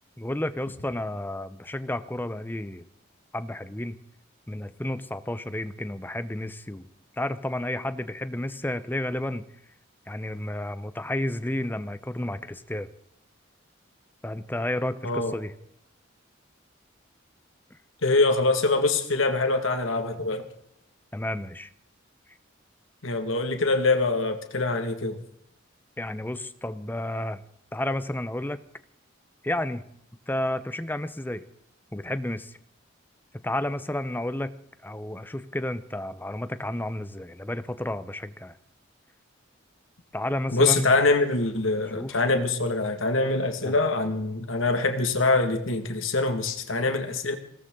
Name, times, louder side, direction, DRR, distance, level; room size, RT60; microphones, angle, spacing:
voice 1, 0.2-2.8 3.3-4.0 4.5-6.9 7.1-9.4 10.1-12.9 14.2-15.5 21.1-21.7 26.0-27.4 27.7-28.6 29.4-29.8 30.3-31.4 31.9-32.5 33.4-34.5 34.8-38.5 40.1-40.9 42.0-42.2 43.6-43.8, left 1 dB, 10° left, 13 dB, 0.7 m, -31 dB
voice 2, 18.0-20.4 23.0-25.2 40.5-47.4, left 3 dB, 85° left, 6 dB, 2.0 m, -24 dB
21.5 x 17.5 x 3.8 m, 0.69 s
head